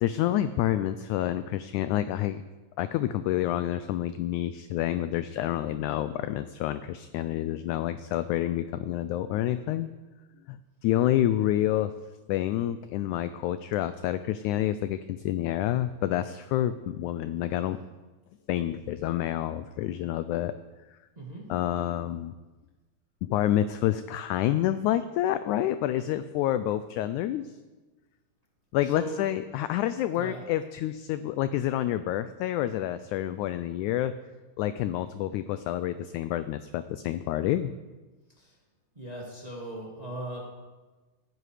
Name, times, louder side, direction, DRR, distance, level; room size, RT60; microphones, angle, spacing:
voice 1, 0.0-2.4 2.8-9.9 10.5-11.9 12.3-17.8 18.5-20.6 21.5-22.3 23.2-27.5 28.7-34.1 34.6-37.7, left 12 dB, 80° left, 12 dB, 1.8 m, -28 dB
voice 2, 21.2-21.5 28.9-29.1 30.2-30.4 38.4-38.5 39.0-40.4, right 1 dB, 15° right, -3 dB, 2.0 m, -38 dB
17.5 x 10.0 x 4.9 m, 1.2 s
omnidirectional pair, 3.9 m